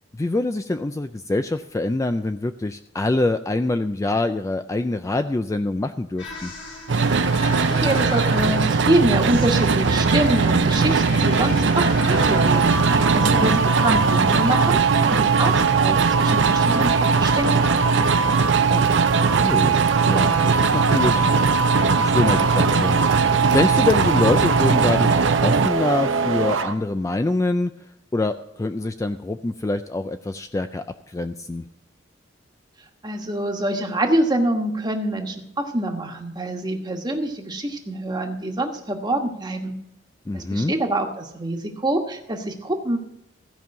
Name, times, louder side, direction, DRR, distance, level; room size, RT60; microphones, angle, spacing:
voice 1, 0.1-6.5 13.4-13.6 18.7-19.0 19.3-19.8 20.0-21.2 22.0-23.0 23.5-27.7 28.1-31.6 40.3-40.7, left 2 dB, 15° left, 9 dB, 0.3 m, -25 dB
sound 1, 6.2-17.4, left 2 dB, 70° left, 3.8 m, -36 dB
sound 2, 6.9-25.7, right 4 dB, 65° right, 0.5 m, -20 dB
voice 2, 7.6-17.8 33.0-39.8 40.3-43.0, right 1 dB, 20° right, 3 dB, 1.3 m, -25 dB
sound 3, 12.1-26.7, right 5 dB, 85° right, 0.9 m, -22 dB
15.5 x 5.4 x 7.5 m, 0.81 s
head